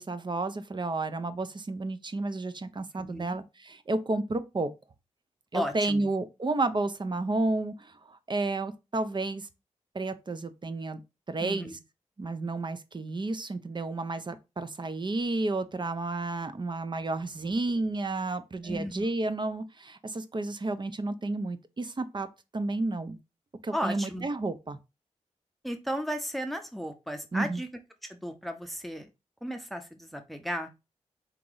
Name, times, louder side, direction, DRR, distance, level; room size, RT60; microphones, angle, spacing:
voice 1, 0.0-4.7 5.5-9.5 9.9-11.0 11.3-11.7 12.2-22.3 22.5-23.2 23.6-24.8 27.3-27.6, right 2 dB, 35° right, 0.6 m, -31 dB
voice 2, 3.0-3.4 5.5-6.1 11.4-11.8 18.6-19.0 23.7-24.3 25.6-27.7 28.0-29.1 29.4-30.7, equal, ahead, 0.7 m, -34 dB
3.9 x 2.9 x 3.8 m
cardioid pair, 50°, 13 cm